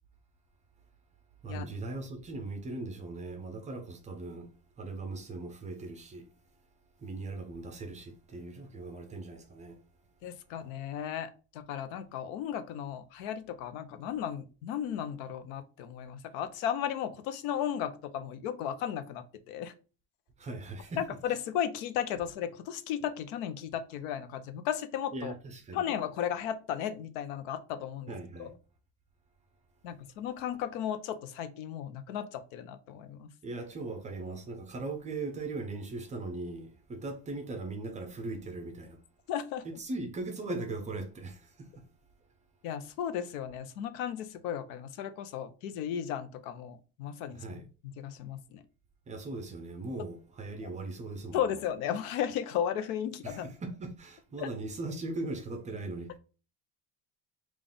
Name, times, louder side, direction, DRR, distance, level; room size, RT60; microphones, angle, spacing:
voice 1, 1.4-6.3 7.0-9.8 20.4-21.0 25.1-25.9 28.1-28.6 33.4-39.0 39.6-41.9 47.3-47.7 49.1-51.4 53.2-56.2, right 2 dB, 20° right, 0.4 m, -39 dB
voice 2, 10.2-19.7 21.0-25.3 25.7-28.1 28.4-28.5 29.8-33.3 39.3-39.6 42.6-47.4 48.0-48.6 50.6-50.7 51.3-53.4 54.4-54.5, left 9 dB, 85° left, 0.7 m, -35 dB
3.5 x 2.4 x 3.8 m
cardioid pair, 145°, 39 cm